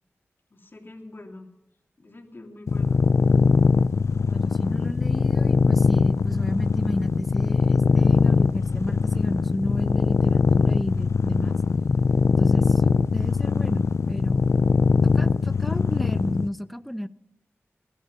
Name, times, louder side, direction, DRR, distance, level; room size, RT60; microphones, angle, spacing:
voice 1, 0.5-1.5 2.0-3.0, left 2 dB, 45° left, 2 dB, 3.0 m, -44 dB
sound 1, 2.7-16.5, left 5 dB, 75° left, 0.5 m, -21 dB
voice 2, 4.2-11.6 12.4-14.5 15.0-17.1, equal, ahead, 14 dB, 0.7 m, -33 dB
20.0 x 12.0 x 5.6 m, 0.82 s
wide cardioid pair, 70°, 5 cm